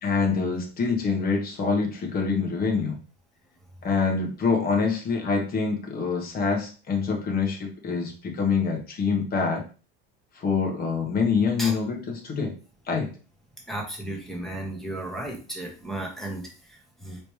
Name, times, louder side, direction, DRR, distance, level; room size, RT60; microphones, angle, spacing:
voice 1, 0.0-3.0 3.8-9.6 10.3-12.6 12.9-13.1, left 5 dB, 30° left, 2 dB, 1.3 m, -25 dB
voice 2, 13.7-17.2, right 1 dB, ahead, -2 dB, 1.3 m, -34 dB
4.0 x 3.3 x 3.2 m, 0.35 s
supercardioid pair, 135°, 31 cm